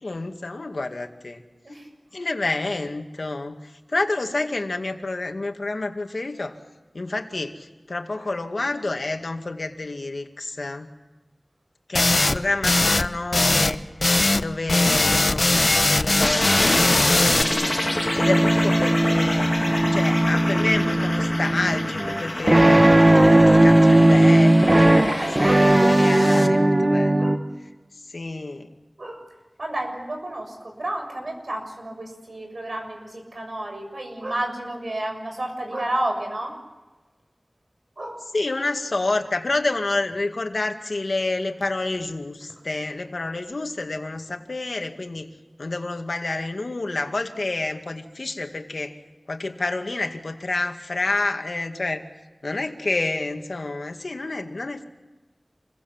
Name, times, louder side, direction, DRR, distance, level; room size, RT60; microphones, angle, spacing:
voice 1, 0.0-1.4 2.1-6.6 6.9-10.9 11.9-17.7 18.1-27.3 28.1-28.7 38.3-45.3 45.6-49.0 49.3-52.0 52.4-54.8, left 2 dB, 85° left, 5 dB, 2.1 m, -29 dB
sound 1, 11.9-12.4 12.6-13.1 13.3-13.7 14.0-14.4 14.7-17.4, left 2 dB, 60° left, 1.0 m, -19 dB
sound 2, 16.2-26.5, left 1 dB, 30° left, 2.3 m, -28 dB
sound 3, 16.6-27.4, right 1 dB, 35° right, 1.8 m, -18 dB
voice 2, 29.6-36.5 38.0-38.3, right 1 dB, 80° right, 3 dB, 6.7 m, -31 dB
28.0 x 22.5 x 7.5 m, 1.2 s
wide cardioid pair, 55°, 0 cm